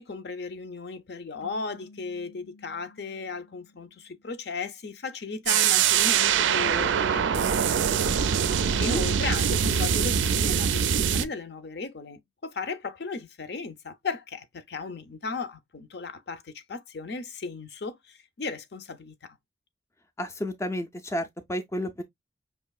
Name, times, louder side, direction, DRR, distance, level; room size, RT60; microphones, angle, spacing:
voice 1, 0.0-19.4, left 4 dB, 60° left, 0.6 m, -36 dB
sound 1, 1.4-4.7, left 3 dB, 80° left, 1.0 m, -54 dB
sound 2, 5.5-11.2, right 8 dB, 80° right, 0.4 m, -23 dB
voice 2, 8.7-9.0 20.2-22.0, equal, 15° left, 0.4 m, -32 dB
5.4 x 2.8 x 2.3 m
head